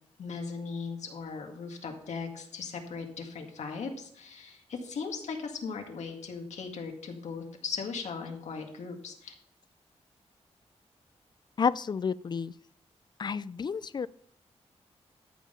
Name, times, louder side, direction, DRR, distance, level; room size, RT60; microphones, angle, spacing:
voice 1, 0.2-9.3, left 5 dB, 90° left, 3 dB, 2.0 m, -38 dB
voice 2, 11.6-12.5 13.2-14.1, left 6 dB, 40° left, 18 dB, 0.4 m, -30 dB
13.0 x 5.6 x 5.7 m, 0.66 s
wide cardioid pair, 115°, 11 cm